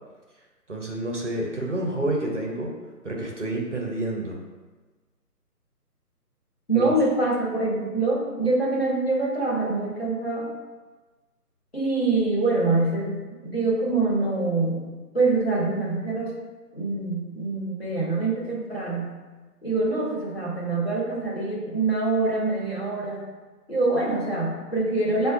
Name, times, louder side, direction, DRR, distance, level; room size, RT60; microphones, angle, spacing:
voice 1, 0.7-2.7 3.0-4.4 6.7-6.9, right 1 dB, 50° right, -1 dB, 0.5 m, -29 dB
voice 2, 6.7-10.5 11.7-16.3 16.7-19.2 19.6-23.3 23.7-25.3, right 3 dB, 40° left, -6 dB, 0.5 m, -25 dB
5.3 x 2.2 x 2.4 m, 1.3 s
figure-of-eight pair, 170°, 48 cm